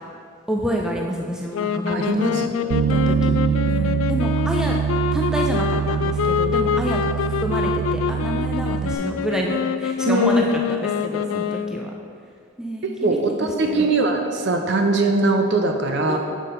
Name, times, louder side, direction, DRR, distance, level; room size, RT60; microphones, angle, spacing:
voice 1, 0.5-2.5 2.9-4.8 5.1-10.4 10.7-11.9 12.6-13.9 16.1-16.2, equal, 5° right, -1 dB, 0.4 m, -28 dB
sound 1, 1.5-11.9, left 7 dB, 80° left, 0.3 m, -25 dB
voice 2, 1.9-2.8 6.8-6.9 10.1-10.3 12.8-16.2, right 2 dB, 55° right, 4 dB, 0.6 m, -21 dB
Bass guitar, 2.7-9.0, right 8 dB, 85° right, 0.3 m, -24 dB
7.4 x 5.2 x 4.2 m, 2.3 s
head